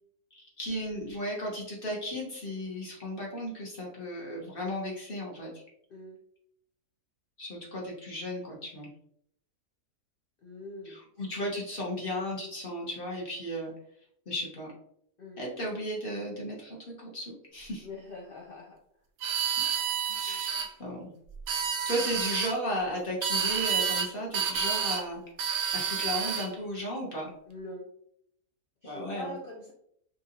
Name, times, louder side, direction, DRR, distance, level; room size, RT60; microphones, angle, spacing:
voice 1, 0.3-5.5 7.4-8.9 10.8-13.7 14.3-14.7 15.4-17.9 20.1-21.0 21.6-25.2 25.7-27.3 28.8-29.4, equal, 40° left, -3 dB, 0.9 m, -35 dB
voice 2, 10.4-11.0 15.2-15.4 17.8-18.8 20.3-20.4 27.5-27.8 28.8-29.7, left 1 dB, 85° left, -1 dB, 0.4 m, -43 dB
Oboe reed, 19.2-20.7 21.3-22.5 23.2-24.1 24.3-25.0 25.4-26.5, right 7 dB, 70° right, 0.6 m, -29 dB
3.8 x 2.8 x 2.5 m, 0.69 s
omnidirectional pair, 1.7 m